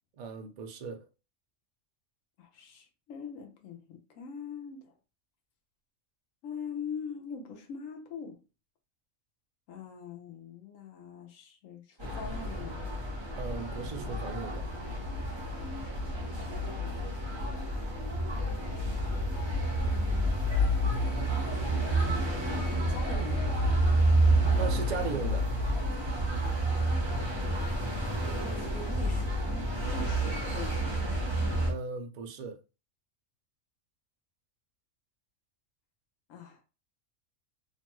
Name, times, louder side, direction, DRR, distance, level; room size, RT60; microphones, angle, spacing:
voice 1, 0.2-1.1 13.3-14.7 24.6-25.5 31.7-32.6, right 5 dB, 75° right, 0.3 m, -37 dB
voice 2, 2.4-4.9 6.4-8.4 9.7-12.9 16.6-16.8 19.8-21.0 21.5-22.0 22.6-23.7 27.4-31.0 36.3-36.6, left 5 dB, 90° left, 1.1 m, -43 dB
sound 1, 12.0-31.7, right 1 dB, 25° right, 0.7 m, -29 dB
2.8 x 2.2 x 3.0 m
omnidirectional pair, 1.3 m